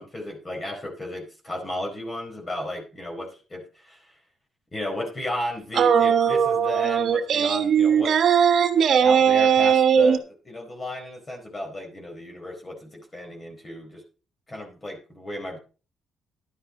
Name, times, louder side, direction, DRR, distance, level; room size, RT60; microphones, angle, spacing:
voice 1, 0.0-4.1 4.7-8.1 9.0-14.0 14.5-15.6, left 1 dB, 25° left, 1 dB, 4.3 m, -34 dB
sound 1, 5.7-10.2, right 7 dB, 60° right, 1.3 m, -19 dB
12.0 x 9.7 x 3.9 m, 0.34 s
cardioid pair, 90°, 0 cm